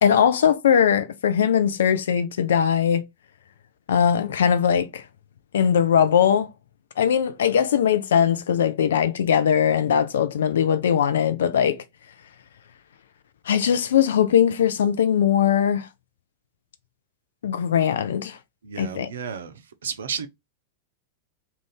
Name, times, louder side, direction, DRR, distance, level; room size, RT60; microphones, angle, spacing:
voice 1, 0.0-3.0 3.9-5.0 5.5-6.5 7.0-11.8 13.5-15.9 17.4-18.4 18.8-19.1, left 8 dB, 65° left, 0.4 m, -20 dB
voice 2, 18.6-19.5 19.8-20.3, right 6 dB, 65° right, 0.5 m, -32 dB
2.4 x 2.3 x 3.2 m
figure-of-eight pair, 90°, 0 cm